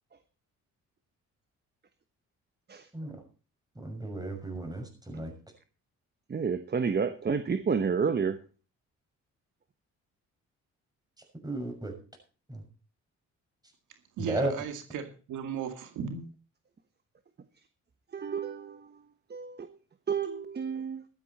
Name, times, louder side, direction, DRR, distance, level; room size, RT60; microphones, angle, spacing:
voice 1, 3.7-5.3 11.4-11.9 12.5-12.6 14.3-14.5, right 2 dB, 15° right, 6.4 m, -34 dB
voice 2, 6.3-8.4 18.1-19.0 19.3-19.7 20.1-21.0, right 6 dB, 35° right, 1.2 m, -30 dB
voice 3, 14.2-16.3, right 6 dB, 85° right, 2.3 m, -36 dB
13.5 x 12.5 x 4.2 m
cardioid pair, 90°, 30 cm